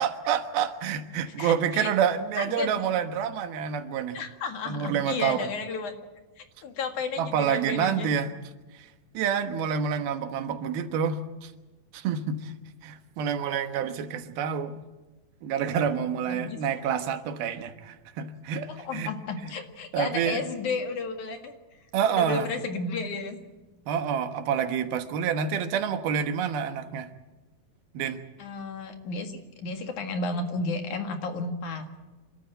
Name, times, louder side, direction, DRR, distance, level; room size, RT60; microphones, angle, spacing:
voice 1, 0.0-4.2 4.7-5.5 7.2-8.3 9.1-11.5 11.9-12.5 12.8-14.7 15.4-19.1 19.9-20.4 21.9-22.5 23.9-27.1 27.9-28.2, right 7 dB, 85° right, 9 dB, 3.1 m, -28 dB
voice 2, 1.4-1.9 2.4-2.9 4.1-5.9 6.4-8.1 16.3-16.6 18.7-21.6 22.1-23.4 28.0-28.1 28.4-31.8, left 4 dB, 60° left, 6 dB, 3.1 m, -33 dB
28.5 x 13.0 x 9.1 m, 1.1 s
omnidirectional pair, 4.2 m